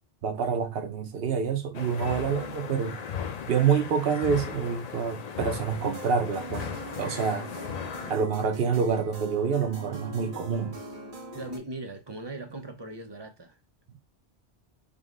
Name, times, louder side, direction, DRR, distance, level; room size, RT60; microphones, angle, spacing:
voice 1, 0.2-3.0 3.4-6.7 7.0-7.5 8.1-10.8, right 6 dB, 65° right, 0.9 m, -27 dB
sound 1, 1.7-8.1, left 7 dB, 55° left, 0.5 m, -37 dB
sound 2, 5.7-11.6, right 1 dB, 50° right, 1.4 m, -42 dB
voice 2, 11.3-13.6, right 2 dB, 30° right, 0.5 m, -39 dB
5.1 x 2.2 x 3.6 m
omnidirectional pair, 1.1 m